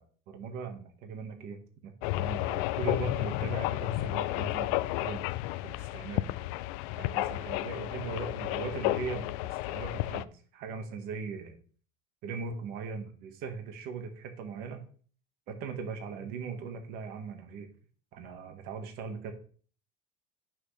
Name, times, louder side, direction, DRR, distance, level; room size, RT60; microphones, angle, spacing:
voice 1, 0.0-5.2 5.6-6.3 7.0-9.3 9.6-11.6 12.2-14.8 15.5-17.7 18.1-19.3, right 5 dB, 55° right, 6 dB, 1.5 m, -39 dB
sound 1, 2.0-10.2, left 18 dB, 80° left, 0.4 m, -32 dB
8.9 x 6.3 x 3.3 m, 0.44 s
cardioid pair, 165°, 18 cm